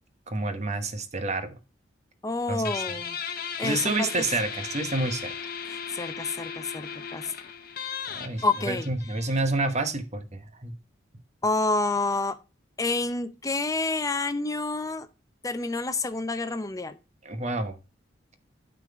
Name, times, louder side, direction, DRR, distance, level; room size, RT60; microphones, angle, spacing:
voice 1, 0.3-1.6 2.5-2.8 3.6-5.3 8.1-10.7 17.2-17.8, right 2 dB, 35° right, 9 dB, 1.1 m, -29 dB
voice 2, 2.2-3.2 3.6-4.3 5.7-7.3 8.4-8.9 11.4-12.4 12.8-15.1 15.4-17.0, left 3 dB, 20° left, 10 dB, 0.6 m, -28 dB
Guitar, 2.6-9.8, left 7 dB, 50° left, 0.9 m, -36 dB
8.9 x 4.0 x 4.7 m, 0.31 s
head